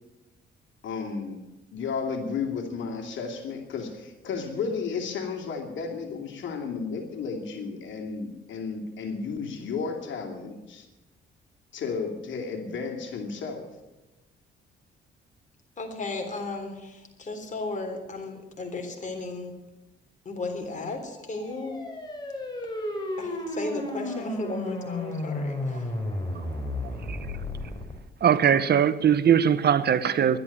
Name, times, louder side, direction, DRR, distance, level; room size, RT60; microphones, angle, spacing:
voice 1, 0.8-10.9 11.7-13.6, left 5 dB, 70° left, 3 dB, 2.7 m, -33 dB
voice 2, 15.8-19.5 20.3-21.8 23.2-25.8, left 3 dB, 40° left, 4 dB, 3.7 m, -35 dB
sound 1, 21.0-27.9, left 1 dB, 20° left, 4.0 m, -33 dB
voice 3, 28.2-30.4, right 8 dB, 55° right, 14 dB, 0.9 m, -21 dB
12.0 x 10.5 x 9.7 m, 1.0 s
cardioid pair, 90°, 20 cm